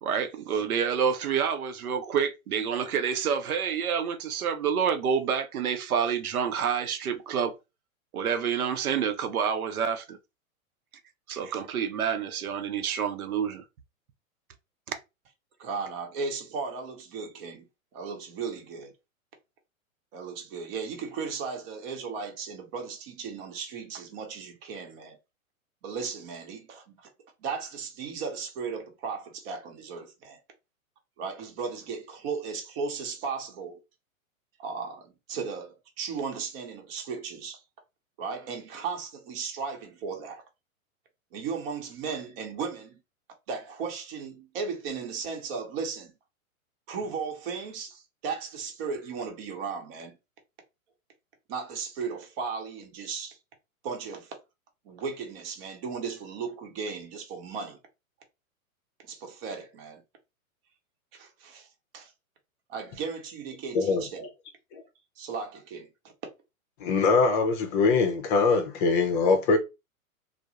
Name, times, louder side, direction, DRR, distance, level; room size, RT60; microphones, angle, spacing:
voice 1, 0.0-7.6 8.1-10.2 11.3-13.6 14.9-15.0, right 7 dB, 85° right, 0.6 m, -28 dB
voice 2, 15.6-17.7 17.9-18.9 20.1-25.2 25.8-27.1 27.4-30.4 31.2-33.8 34.6-37.6 38.2-40.4 41.3-43.0 43.5-46.1 46.9-50.2 51.5-53.4 53.8-54.4 54.8-57.8 59.1-60.0 61.1-61.7 61.9-62.1 62.7-64.3 65.2-65.9, right 5 dB, 45° right, 0.9 m, -36 dB
voice 3, 63.7-64.0 64.7-64.8 66.8-69.6, left 4 dB, 35° left, 0.5 m, -23 dB
2.2 x 2.0 x 2.8 m
hypercardioid pair, 115°, 42 cm